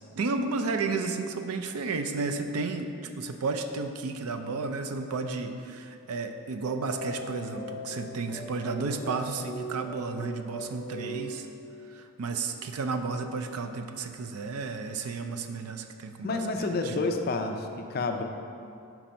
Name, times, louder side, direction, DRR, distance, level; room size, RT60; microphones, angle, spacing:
voice 1, 0.2-11.5 11.9-16.9, right 4 dB, 80° right, 6 dB, 0.5 m, -32 dB
sound 1, 6.8-11.7, equal, 25° left, 0.8 m, -40 dB
voice 2, 16.2-18.2, left 3 dB, 45° left, 5 dB, 0.4 m, -29 dB
5.8 x 4.5 x 5.1 m, 2.5 s
head